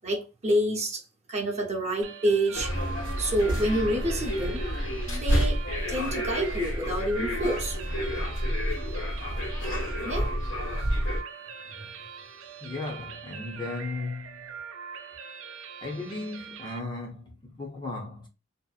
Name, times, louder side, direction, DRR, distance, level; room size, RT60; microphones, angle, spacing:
voice 1, 0.0-1.0 1.3-2.7 3.2-4.6 5.1-5.6 5.9-7.8 10.0-10.3, right 1 dB, 35° right, 0.7 m, -28 dB
sound 1, 2.0-16.8, right 6 dB, 80° right, 0.4 m, -42 dB
sound 2, 2.5-11.2, equal, 80° left, 1.2 m, -29 dB
voice 2, 12.6-14.5 15.8-18.3, left 3 dB, 25° left, 0.6 m, -36 dB
2.7 x 2.0 x 2.3 m
head